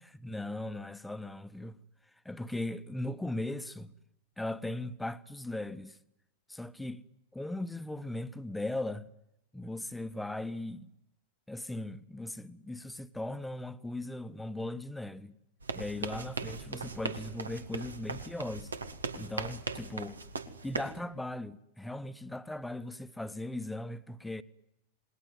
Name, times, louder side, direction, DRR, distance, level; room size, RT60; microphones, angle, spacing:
voice 1, 0.2-1.8 2.2-3.9 4.4-6.0 6.5-7.0 7.3-9.1 9.5-10.9 11.5-15.4 15.7-18.7 19.2-20.2 20.6-24.4, left 1 dB, 5° left, 1.3 m, -38 dB
sound 1, 15.6-21.0, right 4 dB, 75° right, 2.1 m, -39 dB
28.5 x 20.5 x 9.6 m
figure-of-eight pair, 90°, 0 cm